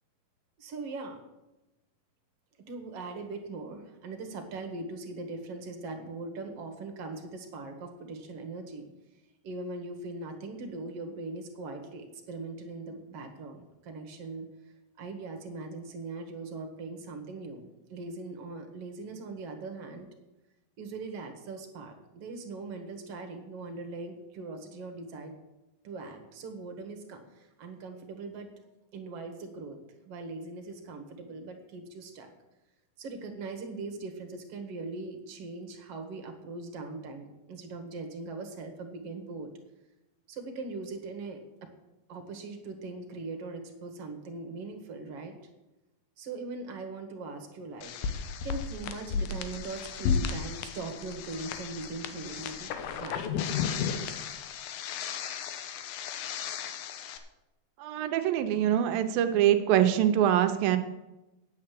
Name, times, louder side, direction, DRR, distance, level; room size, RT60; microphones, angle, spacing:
voice 1, 0.6-1.2 2.6-8.9 9.4-14.5 15.0-20.1 20.8-25.3 25.8-28.5 28.9-29.8 30.1-32.3 33.0-39.5 40.3-41.4 42.1-45.3 46.2-47.9 48.4-53.2, right 3 dB, 50° right, 5 dB, 2.0 m, -40 dB
sound 1, 47.8-57.2, left 6 dB, 85° left, 2.8 m, -34 dB
voice 2, 57.8-60.8, right 11 dB, 80° right, 8 dB, 2.5 m, -24 dB
9.4 x 8.6 x 7.5 m, 0.98 s
omnidirectional pair, 4.2 m